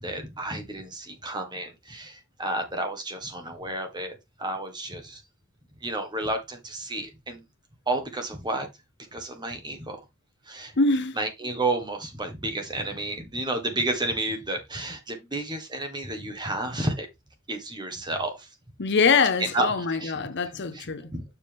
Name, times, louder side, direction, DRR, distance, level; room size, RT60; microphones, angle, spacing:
voice 1, 0.0-5.2 5.8-7.4 7.9-8.7 9.1-10.0 10.5-10.7 11.2-17.1 17.5-18.5 19.5-19.7 20.0-20.1 20.7-20.8 21.1-21.2, right 2 dB, 20° right, 1.6 m, -31 dB
voice 2, 10.8-11.2 18.8-21.1, left 4 dB, 55° left, 0.8 m, -23 dB
7.2 x 5.6 x 3.5 m
head